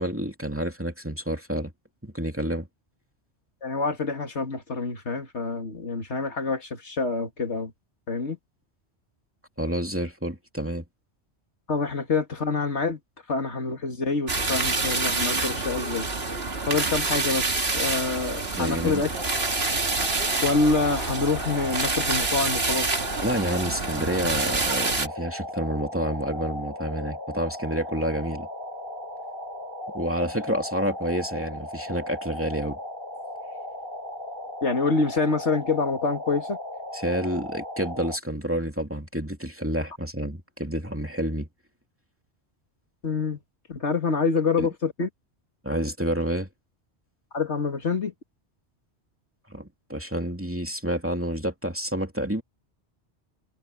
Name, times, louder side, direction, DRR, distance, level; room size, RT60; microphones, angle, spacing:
voice 1, 0.0-1.7 2.0-2.7 9.6-10.8 18.5-19.0 23.2-28.5 29.9-32.8 36.9-41.5 44.6-44.7 45.6-46.5 49.5-52.4, equal, 10° right, 2.7 m, -29 dB
voice 2, 3.6-7.7 8.1-8.4 11.7-13.0 13.3-16.1 16.7-19.1 20.4-23.0 34.6-36.6 43.0-43.4 43.7-45.1 47.3-48.1, left 4 dB, 80° left, 2.6 m, -26 dB
sound 1, 14.3-25.1, right 3 dB, 60° right, 2.4 m, -27 dB
sound 2, 19.0-38.2, left 1 dB, 55° left, 6.7 m, -37 dB
omnidirectional pair, 1.2 m